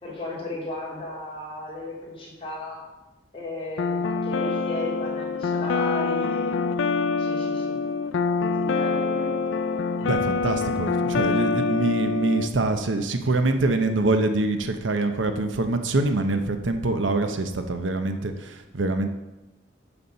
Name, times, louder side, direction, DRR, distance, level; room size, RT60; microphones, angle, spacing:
voice 1, 0.0-2.8 3.3-6.6 7.2-7.8 8.4-9.3 10.9-11.0, left 2 dB, 30° left, -5 dB, 2.9 m, -35 dB
sound 1, 3.8-12.5, left 4 dB, 90° left, 0.5 m, -25 dB
voice 2, 10.0-19.1, right 2 dB, 80° right, 7 dB, 0.8 m, -25 dB
7.2 x 6.8 x 5.6 m, 1.0 s
head